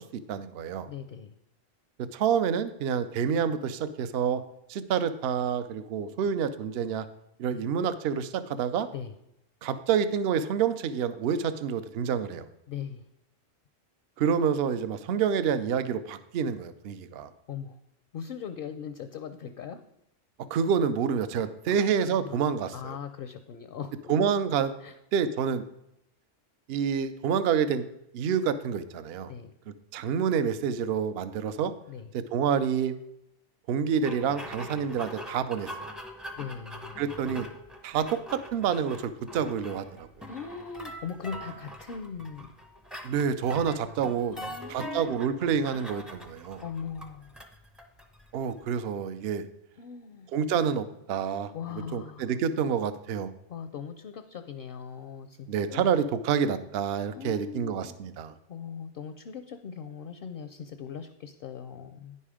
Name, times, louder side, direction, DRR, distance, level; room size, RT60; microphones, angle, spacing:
voice 1, 0.0-0.9 2.1-4.4 4.7-7.1 7.4-8.9 9.6-12.4 14.2-17.3 20.5-23.0 24.1-24.7 25.1-25.6 26.7-27.9 28.1-29.3 29.9-31.7 32.1-32.9 33.7-35.9 37.0-37.5 37.8-40.3 43.0-44.4 44.7-46.6 48.3-49.5 50.3-51.5 51.9-53.3 55.5-58.3, right 7 dB, 65° right, 12 dB, 0.7 m, -28 dB
voice 2, 0.8-1.3 7.5-7.6 8.9-9.1 12.7-13.1 17.5-17.8 18.1-19.8 21.7-21.9 22.2-22.4 22.7-24.1 24.8-25.0 29.3-29.5 31.9-32.1 36.4-37.0 40.3-42.5 44.3-45.2 46.6-47.4 49.8-50.3 51.5-52.3 53.5-55.8 57.1-58.0 58.5-62.2, left 7 dB, 60° left, 10 dB, 0.6 m, -40 dB
sound 1, 34.0-48.6, equal, ahead, 0.5 m, -43 dB
9.7 x 5.5 x 4.9 m, 0.82 s
omnidirectional pair, 1.2 m